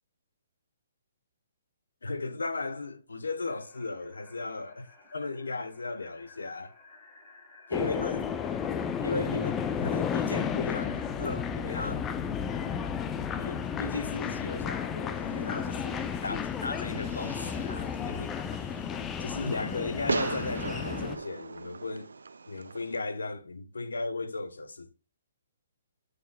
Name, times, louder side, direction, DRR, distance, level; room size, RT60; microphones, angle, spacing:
voice 1, 2.0-6.7 7.7-8.3 9.0-12.1 13.4-18.3 19.2-22.1 22.5-24.9, left 3 dB, 90° left, 1.0 m, -36 dB
sound 1, 3.4-15.3, left 3 dB, 40° left, 4.5 m, -57 dB
sound 2, 7.7-21.2, left 7 dB, 15° left, 0.5 m, -33 dB
Fireworks, 15.1-23.0, right 4 dB, 85° right, 0.6 m, -39 dB
9.2 x 6.6 x 2.3 m
hypercardioid pair, 140°, 0 cm